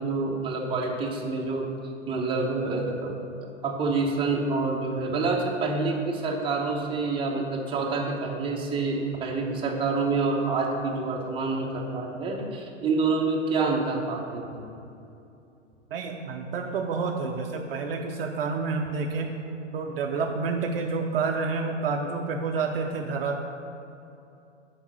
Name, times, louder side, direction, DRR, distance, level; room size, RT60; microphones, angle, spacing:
voice 1, 0.0-1.7 2.1-3.1 3.4-14.7, right 3 dB, 15° right, -1 dB, 1.1 m, -27 dB
voice 2, 15.9-19.4 19.7-23.4, right 4 dB, 50° right, 3 dB, 0.7 m, -29 dB
7.0 x 5.3 x 6.9 m, 2.7 s
figure-of-eight pair, 110°, 36 cm